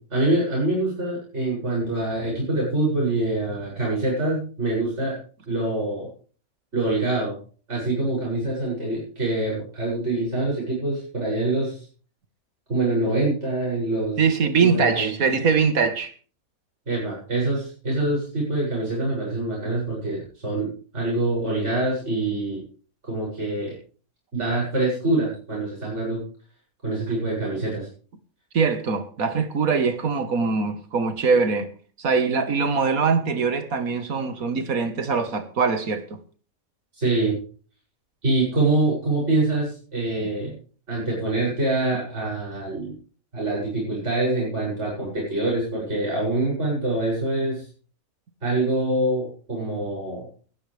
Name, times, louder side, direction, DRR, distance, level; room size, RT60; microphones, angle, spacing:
voice 1, 0.1-5.2 5.5-6.1 6.7-7.3 7.7-11.9 12.7-14.2 14.6-15.3 16.9-22.6 23.0-23.8 24.3-26.2 26.8-27.9 36.9-37.3 38.2-40.5 40.9-42.9 43.3-47.7 48.4-50.3, right 2 dB, 55° right, 8.1 m, -25 dB
voice 2, 14.2-16.1 28.5-31.7 32.0-36.0 40.2-40.3, right 5 dB, 85° right, 2.1 m, -22 dB
19.0 x 15.0 x 3.5 m
omnidirectional pair, 1.4 m